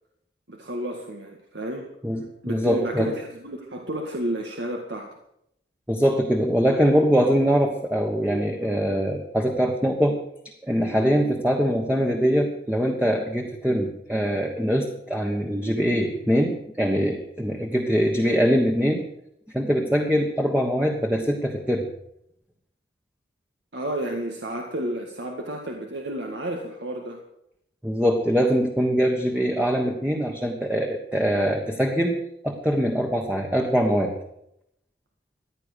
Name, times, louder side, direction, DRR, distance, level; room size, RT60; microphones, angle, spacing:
voice 1, 0.5-1.9 2.4-5.1 23.7-27.2, right 1 dB, 80° right, 2 dB, 1.9 m, -31 dB
voice 2, 2.0-3.1 5.9-10.2 10.6-19.0 19.5-21.9 27.8-32.2 32.4-34.2, equal, 5° right, 1 dB, 1.3 m, -23 dB
15.5 x 10.5 x 6.7 m, 0.77 s
head